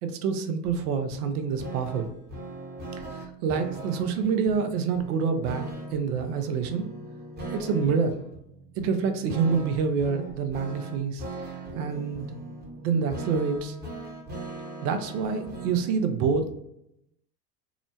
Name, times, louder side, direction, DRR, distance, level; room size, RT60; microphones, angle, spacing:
voice 1, 0.0-2.1 3.0-5.7 5.9-6.8 7.5-8.1 8.8-12.3 12.8-13.8 14.8-16.5, right 5 dB, 65° right, 7 dB, 0.6 m, -27 dB
sound 1, 0.6-16.0, right 2 dB, 20° right, 0.9 m, -40 dB
2.9 x 2.1 x 2.6 m, 0.80 s
hypercardioid pair, 85°, 49 cm